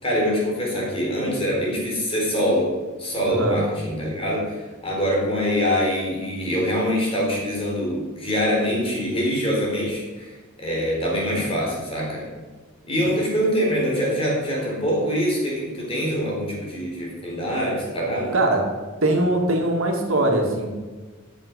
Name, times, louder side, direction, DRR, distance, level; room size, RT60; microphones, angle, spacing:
voice 1, 0.0-2.7 3.0-12.3 12.8-18.3, equal, 30° left, -3 dB, 4.0 m, -24 dB
voice 2, 18.3-18.7 19.0-20.8, right 1 dB, 75° right, 1 dB, 2.1 m, -21 dB
13.0 x 8.2 x 5.3 m, 1.3 s
head